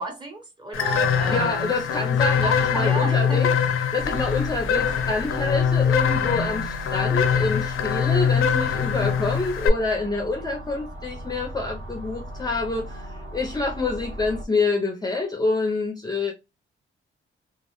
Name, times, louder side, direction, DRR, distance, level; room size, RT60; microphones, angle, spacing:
voice 1, 0.0-1.7 2.4-3.5, right 3 dB, 20° right, 0.9 m, -32 dB
sound 1, 0.7-9.7, left 7 dB, 85° left, 0.5 m, -23 dB
voice 2, 1.2-3.5 3.9-16.3, left 3 dB, 20° left, 0.4 m, -27 dB
sound 2, 4.0-14.5, equal, 55° right, 0.8 m, -37 dB
2.4 x 2.0 x 2.9 m
wide cardioid pair, 145°, 21 cm